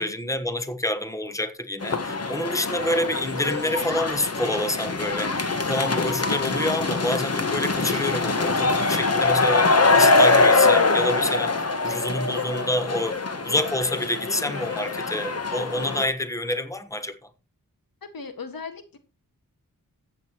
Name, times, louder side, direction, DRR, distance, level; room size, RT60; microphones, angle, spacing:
voice 1, 0.0-13.2 13.4-17.1, left 1 dB, 10° left, 1.2 m, -27 dB
sound 1, 1.8-16.1, left 3 dB, 45° left, 1.4 m, -23 dB
voice 2, 18.0-19.0, left 4 dB, 80° left, 1.7 m, -37 dB
14.5 x 8.4 x 3.0 m
wide cardioid pair, 60°, 35 cm